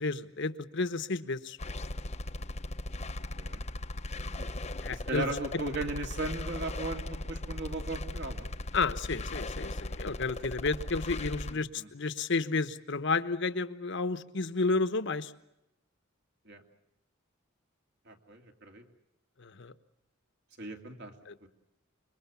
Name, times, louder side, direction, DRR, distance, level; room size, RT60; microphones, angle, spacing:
voice 1, 0.0-1.6 4.8-5.3 8.7-15.3 19.4-19.7 21.3-21.4, left 3 dB, 60° left, 12 dB, 1.1 m, -31 dB
sound 1, 1.6-11.5, left 2 dB, 35° left, 0.8 m, -38 dB
voice 2, 4.1-4.5 4.9-8.5 11.5-11.9 16.5-16.6 18.1-18.8 20.6-21.1 21.4-21.5, right 2 dB, 55° right, 4 dB, 2.8 m, -37 dB
26.0 x 23.0 x 7.1 m, 0.88 s
head